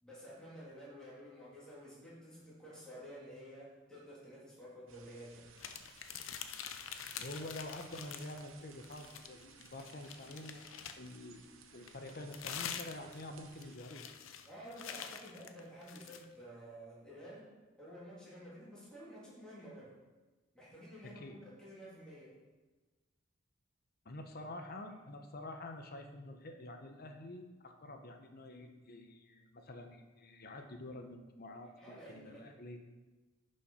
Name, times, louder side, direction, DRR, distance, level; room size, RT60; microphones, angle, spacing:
voice 1, 0.0-5.5 14.4-17.5 17.8-19.9 20.5-22.3 31.8-32.5, equal, 5° left, -8 dB, 3.0 m, -51 dB
sound 1, 4.9-13.8, right 6 dB, 75° right, 0.9 m, -60 dB
sound 2, 5.6-8.5 8.8-11.2 11.9-16.3, left 8 dB, 75° left, 0.6 m, -46 dB
voice 2, 7.1-10.7 11.0-11.4 11.7-14.1 21.0-21.4 24.0-32.8, left 1 dB, 50° left, 5 dB, 0.9 m, -48 dB
10.5 x 5.5 x 5.6 m, 1.2 s
head